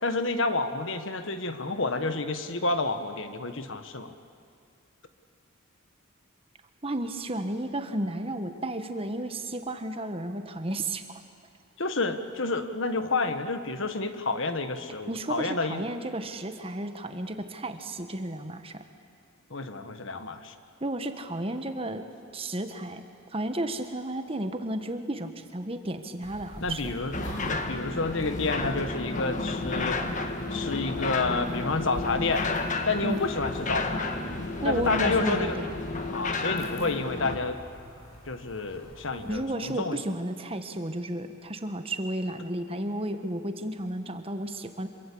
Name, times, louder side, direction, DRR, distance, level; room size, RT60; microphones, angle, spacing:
voice 1, 0.0-4.1 11.8-15.8 19.5-20.5 26.6-30.0 30.5-32.5 32.8-34.1 34.6-35.6 36.1-37.6 38.3-40.0, left 3 dB, 65° left, 9 dB, 1.5 m, -29 dB
voice 2, 6.8-11.2 15.1-18.8 20.8-22.1 22.3-23.0 23.3-26.9 33.0-33.2 34.6-35.7 39.3-44.9, right 1 dB, 25° right, 7 dB, 1.3 m, -33 dB
sound 1, 26.2-39.4, equal, 90° left, 7.8 m, -46 dB
sound 2, 27.1-37.4, left 3 dB, 35° left, 1.5 m, -31 dB
26.5 x 23.5 x 8.6 m, 2.2 s
head